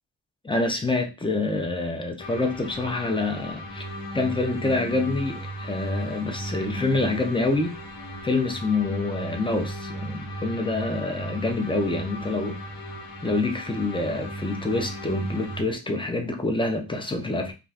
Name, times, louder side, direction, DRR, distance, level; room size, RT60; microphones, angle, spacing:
voice 1, 0.4-3.8 4.1-7.7 8.2-12.6 13.2-17.5, left 2 dB, 10° left, 0.4 m, -26 dB
sound 1, 2.2-15.6, right 1 dB, 55° left, 1.1 m, -36 dB
2.4 x 2.3 x 3.3 m
wide cardioid pair, 110°, 46 cm